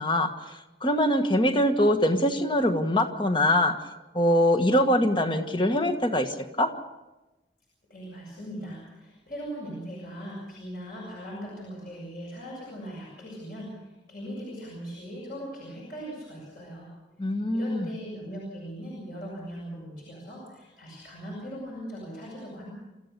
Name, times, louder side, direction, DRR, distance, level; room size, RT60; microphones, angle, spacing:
voice 1, 0.0-3.9 4.1-6.7 17.2-17.9, left 1 dB, 25° left, 7 dB, 1.5 m, -23 dB
voice 2, 7.9-16.9 17.5-22.7, equal, 50° left, -5 dB, 7.0 m, -39 dB
27.0 x 14.5 x 6.8 m, 1.1 s
head